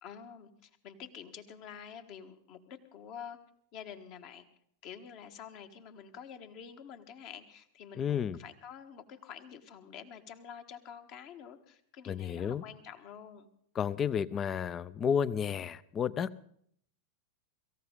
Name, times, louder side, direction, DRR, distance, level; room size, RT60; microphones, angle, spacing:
voice 1, 0.0-3.4 3.7-4.5 4.8-13.5, left 8 dB, 40° left, 7 dB, 1.5 m, -48 dB
voice 2, 8.0-8.4 12.1-12.6 13.8-16.5, left 7 dB, 25° left, 20 dB, 0.6 m, -32 dB
23.5 x 15.0 x 3.9 m, 0.66 s
figure-of-eight pair, 90°, 0 cm